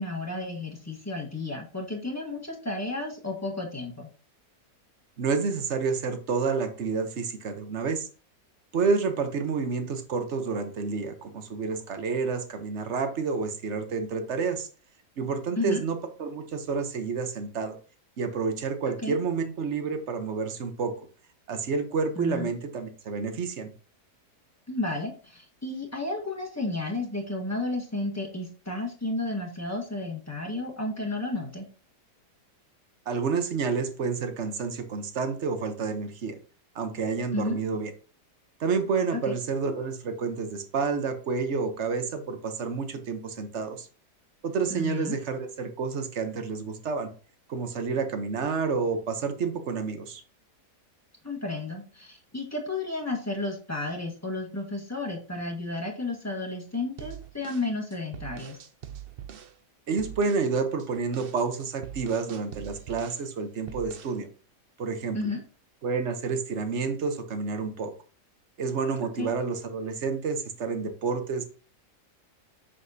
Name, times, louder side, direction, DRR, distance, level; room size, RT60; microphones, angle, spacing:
voice 1, 0.0-4.1 15.6-15.8 19.0-19.2 22.2-22.5 24.7-31.7 37.3-37.6 39.3-39.4 44.7-45.2 51.2-58.6 65.1-65.4 69.2-69.3, left 2 dB, 10° left, -1 dB, 1.3 m, -32 dB
voice 2, 5.2-8.1 8.7-14.7 15.2-17.8 18.2-20.9 21.5-23.7 33.1-36.4 36.7-37.9 38.6-43.9 44.4-47.1 47.5-50.2 59.9-64.3 64.8-65.2 65.8-67.9 68.6-71.4, right 5 dB, 50° right, 8 dB, 1.1 m, -29 dB
sound 1, 57.0-59.6 60.0-60.5 60.8-63.3 63.7-64.2, right 9 dB, 65° right, 0.5 m, -43 dB
7.4 x 6.2 x 2.8 m, 0.38 s
omnidirectional pair, 1.8 m